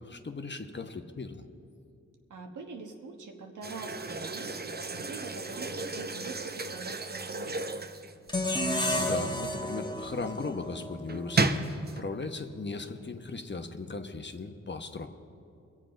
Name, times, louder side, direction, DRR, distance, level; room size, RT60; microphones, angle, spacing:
voice 1, 0.0-1.4 9.0-15.1, left 3 dB, 35° left, 6 dB, 1.1 m, -37 dB
voice 2, 2.3-7.9, right 4 dB, 85° right, 3 dB, 1.4 m, -44 dB
sound 1, 3.6-8.6 11.1-12.0, right 3 dB, 35° right, 0.8 m, -33 dB
sound 2, 8.3-11.5, left 1 dB, 15° left, 1.3 m, -32 dB
22.0 x 7.6 x 5.2 m, 2.5 s
cardioid pair, 55°, 30 cm